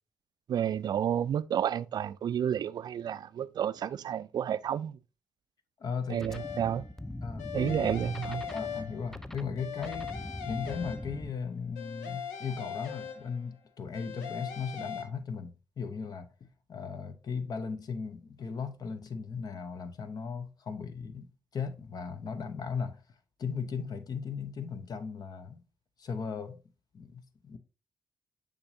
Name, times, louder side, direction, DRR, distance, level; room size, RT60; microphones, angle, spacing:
voice 1, 0.5-5.0 6.1-6.8 7.5-8.5, right 9 dB, 50° right, 0.4 m, -31 dB
voice 2, 5.8-6.3 7.2-7.9 8.5-10.1 10.4-23.0 23.4-25.6 26.0-26.6 26.9-27.6, left 5 dB, 50° left, 0.8 m, -37 dB
sound 1, 6.2-11.3, left 1 dB, 5° left, 0.5 m, -42 dB
sound 2, 6.3-6.9 7.4-9.2 9.6-11.4 11.7-13.5 13.9-15.0, left 7 dB, 85° left, 0.7 m, -40 dB
6.9 x 5.2 x 2.7 m
hypercardioid pair, 40°, 9 cm